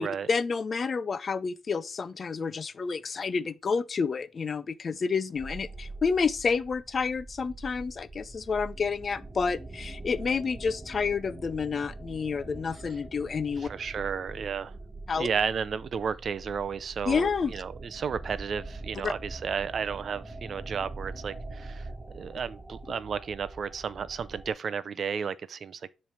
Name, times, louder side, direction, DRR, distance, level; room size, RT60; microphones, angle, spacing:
voice 1, 0.0-13.7 15.1-15.3 17.1-17.5 19.0-19.1, left 5 dB, 40° left, 0.5 m, -29 dB
sound 1, 5.4-24.5, right 2 dB, 20° right, 1.0 m, -43 dB
voice 2, 13.6-14.7 15.1-21.9 22.1-25.8, right 6 dB, 50° right, 0.5 m, -33 dB
7.2 x 3.2 x 5.6 m
cardioid pair, 90°, 0 cm